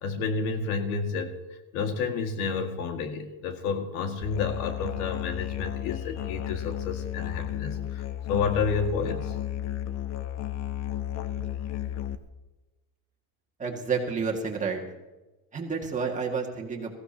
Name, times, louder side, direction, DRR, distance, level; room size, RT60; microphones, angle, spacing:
voice 1, 0.0-1.3 1.7-8.0 8.3-9.4, left 5 dB, 80° left, 5 dB, 2.1 m, -30 dB
Musical instrument, 4.2-12.2, left 11 dB, 40° left, 0.9 m, -33 dB
voice 2, 13.6-14.8 15.5-16.9, right 5 dB, 15° right, 0 dB, 2.1 m, -30 dB
20.5 x 15.5 x 2.9 m, 1.1 s
cardioid pair, 145°, 42 cm